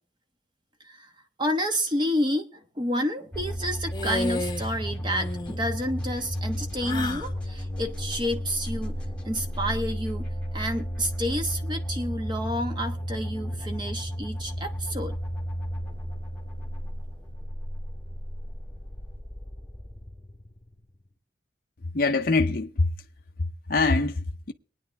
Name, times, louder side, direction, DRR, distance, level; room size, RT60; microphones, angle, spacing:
voice 1, 1.4-8.9 9.2-15.2, equal, 25° right, 1.1 m, -29 dB
sound 1, 3.3-21.1, equal, 5° left, 1.7 m, -33 dB
sound 2, 3.9-4.7 5.0-5.6 6.8-7.3, left 2 dB, 20° left, 1.0 m, -32 dB
voice 2, 21.9-22.9 23.4-24.5, left 3 dB, 50° left, 0.6 m, -24 dB
23.0 x 9.8 x 3.4 m
head